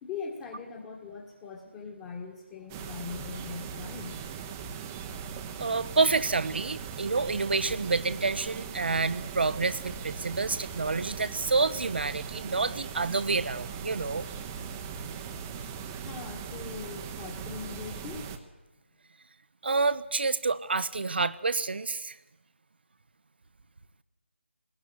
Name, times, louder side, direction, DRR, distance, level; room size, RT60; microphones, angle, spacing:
voice 1, 0.0-4.2 15.9-18.3, left 5 dB, 15° left, -1 dB, 1.8 m, -41 dB
sound 1, 2.7-18.4, right 6 dB, 15° right, 1.1 m, -39 dB
voice 2, 5.6-14.3 19.6-22.2, right 4 dB, 55° right, 15 dB, 1.1 m, -28 dB
21.5 x 19.5 x 9.6 m, 1.0 s
figure-of-eight pair, 160°, 7 cm